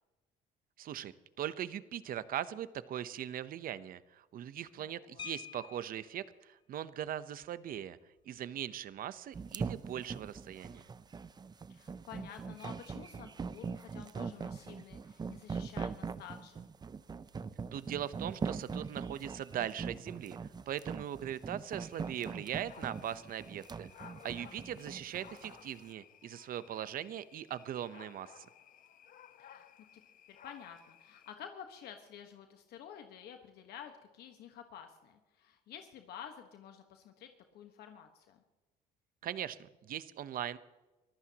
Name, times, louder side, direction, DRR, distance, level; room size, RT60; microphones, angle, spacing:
voice 1, 0.8-8.0 8.3-10.9 17.7-20.4 20.7-28.5 39.2-40.6, right 10 dB, 55° right, 14 dB, 0.9 m, -40 dB
voice 2, 4.8-5.3 11.7-16.7 24.5-25.0 29.4-30.0 30.3-38.4, left 9 dB, 75° left, 5 dB, 1.4 m, -51 dB
sound 1, 5.2-6.3 7.7-7.8 8.2-8.4 8.7-9.0, left 8 dB, 30° left, 0.5 m, -48 dB
sound 2, 9.3-25.6, right 5 dB, 25° right, 0.6 m, -41 dB
sound 3, 21.7-31.3, left 9 dB, 55° left, 0.9 m, -57 dB
24.0 x 14.5 x 2.9 m, 1.1 s
cardioid pair, 110°, 17 cm